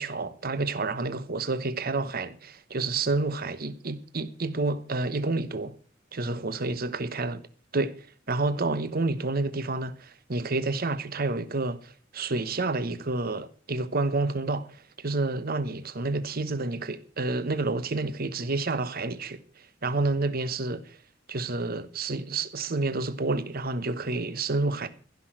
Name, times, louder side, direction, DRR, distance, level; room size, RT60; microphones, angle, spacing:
voice 1, 0.0-5.8 6.1-7.5 7.7-21.0 21.3-24.9, right 3 dB, 50° right, 1.1 m, -29 dB
15.5 x 6.1 x 7.7 m
head